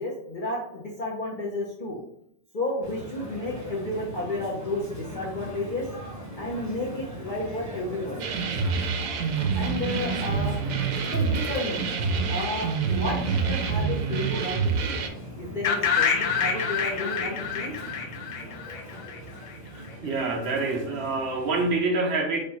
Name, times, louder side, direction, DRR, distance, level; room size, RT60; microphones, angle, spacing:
voice 1, 0.0-2.0 2.5-5.9 6.3-8.2 9.5-10.6 11.0-11.9 12.3-15.1 15.4-17.7, left 2 dB, 45° left, -4 dB, 0.7 m, -32 dB
sound 1, 2.8-21.7, right 1 dB, 15° right, 1.0 m, -40 dB
sound 2, 8.2-15.1, right 5 dB, 90° right, 1.0 m, -27 dB
sound 3, 15.6-19.5, left 6 dB, 70° left, 1.0 m, -27 dB
voice 2, 19.7-22.4, right 3 dB, 60° right, 3 dB, 0.8 m, -26 dB
5.0 x 2.3 x 4.0 m, 0.71 s
omnidirectional pair, 1.4 m